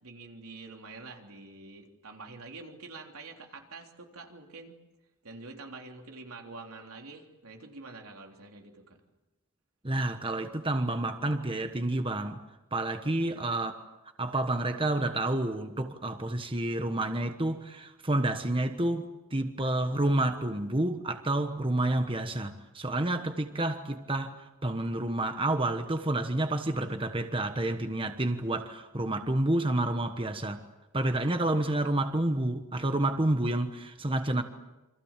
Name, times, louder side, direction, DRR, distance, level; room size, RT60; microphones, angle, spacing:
voice 1, 0.0-4.7 5.2-9.0 13.0-13.4, right 3 dB, 80° right, 3.5 m, -47 dB
voice 2, 9.8-12.4 12.7-13.7 14.2-30.6 30.9-34.4, right 1 dB, 25° right, 1.2 m, -29 dB
28.0 x 26.0 x 7.5 m
head